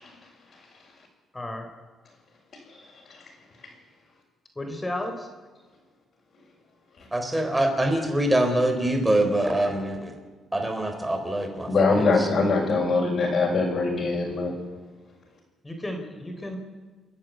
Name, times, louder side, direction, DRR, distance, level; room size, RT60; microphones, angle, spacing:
voice 1, 1.3-1.7 4.6-5.3 15.6-16.6, left 1 dB, 15° left, 5 dB, 3.8 m, -33 dB
voice 2, 7.1-10.1 10.5-12.3, right 1 dB, 10° right, 5 dB, 4.2 m, -24 dB
voice 3, 11.7-14.5, left 3 dB, 55° left, -5 dB, 5.7 m, -22 dB
29.5 x 11.0 x 9.2 m, 1.4 s
cardioid pair, 90°, 0 cm